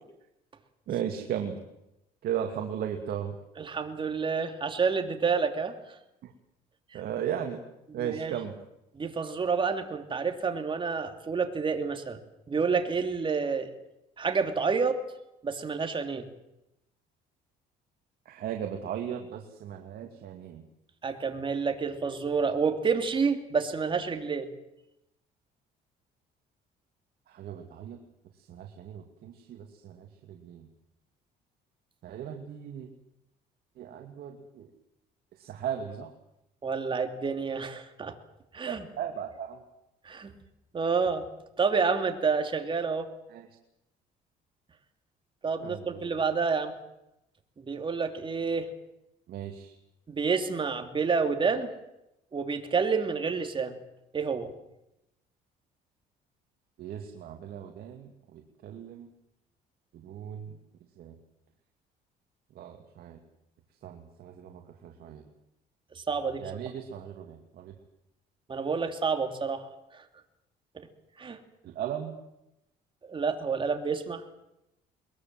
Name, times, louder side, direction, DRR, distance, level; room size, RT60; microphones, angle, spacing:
voice 1, 0.9-1.6 2.2-3.3 6.2-6.3 6.9-7.6 7.9-8.5 18.3-20.6 27.3-28.0 28.5-30.7 32.0-32.9 33.8-34.7 35.4-36.1 38.7-39.6 43.3-43.5 45.6-46.1 49.3-49.7 56.8-59.1 59.9-60.5 61.0-61.2 62.6-63.2 63.8-65.2 66.4-67.7 71.6-72.1, right 9 dB, 65° right, 3 dB, 2.6 m, -37 dB
voice 2, 3.6-5.8 6.9-7.0 7.9-8.3 8.9-12.2 12.5-13.7 14.2-15.0 15.4-16.3 21.0-24.5 36.6-38.1 38.5-38.9 40.0-40.3 40.7-41.2 41.6-43.1 45.4-46.7 47.6-48.7 50.1-51.7 52.3-53.7 54.1-54.5 65.9-66.6 68.5-69.7 69.9-70.0 71.2-71.4 73.0-74.4, right 5 dB, 30° right, 6 dB, 3.0 m, -29 dB
22.0 x 22.0 x 7.8 m, 0.87 s
cardioid pair, 110°, 17 cm